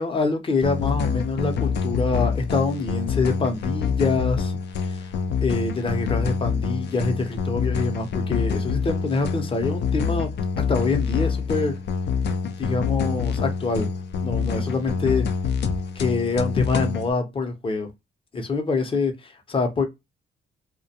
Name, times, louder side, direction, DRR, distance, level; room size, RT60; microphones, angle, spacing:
voice 1, 0.0-5.1 5.4-10.3 10.6-11.8 12.6-13.9 14.2-15.3 15.9-17.9 18.3-19.8, left 3 dB, 25° left, 0.7 m, -25 dB
sound 1, 0.6-17.1, left 6 dB, 60° left, 0.5 m, -26 dB
2.4 x 2.2 x 2.7 m
cardioid pair, 90°, 20 cm